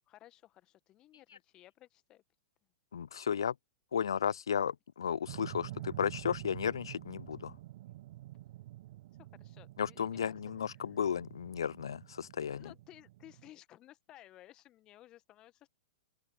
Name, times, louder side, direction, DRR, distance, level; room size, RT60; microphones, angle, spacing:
voice 1, 0.1-2.2 5.6-5.9 9.2-10.8 12.2-15.7, left 14 dB, 30° left, 1.7 m, -58 dB
voice 2, 2.9-3.5 3.9-7.5 9.8-12.7, left 7 dB, 70° left, 0.4 m, -34 dB
sound 1, 5.3-13.5, right 15 dB, 50° right, 0.3 m, -48 dB
open air
figure-of-eight pair, 100°, 3 cm